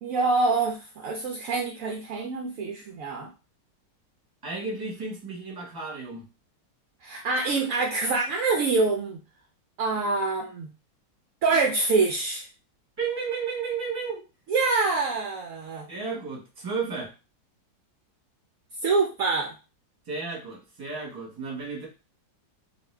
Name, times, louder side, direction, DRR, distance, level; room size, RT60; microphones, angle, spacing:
voice 1, 0.0-3.3 7.0-9.2 9.8-10.7 11.4-12.5 14.5-15.9 18.8-19.5, right 3 dB, 80° right, 0 dB, 0.7 m, -25 dB
voice 2, 4.4-6.2 13.0-14.2 15.9-17.1 20.1-21.9, right 5 dB, 15° right, -3 dB, 0.9 m, -33 dB
2.8 x 2.5 x 3.2 m, 0.31 s
omnidirectional pair, 2.0 m